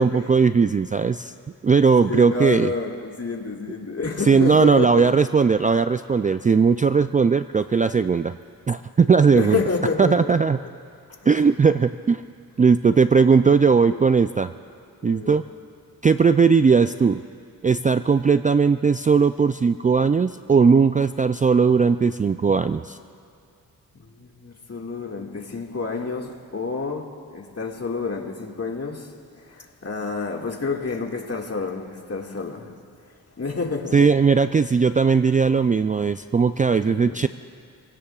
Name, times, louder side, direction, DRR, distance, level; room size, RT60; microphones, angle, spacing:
voice 1, 0.0-1.3 1.6-2.7 4.3-8.4 8.7-9.6 10.0-10.6 11.3-12.2 12.6-14.5 15.0-15.4 16.0-17.2 17.6-23.0 33.9-37.3, right 5 dB, 20° right, 11 dB, 0.3 m, -18 dB
voice 2, 2.1-5.1 9.3-10.1 11.1-11.5 13.9-14.1 15.0-15.4 24.0-29.1 29.4-32.7 33.4-34.0 36.8-37.2, left 4 dB, 40° left, 1 dB, 2.0 m, -29 dB
27.0 x 17.0 x 2.4 m, 2.4 s
cardioid pair, 55°, 37 cm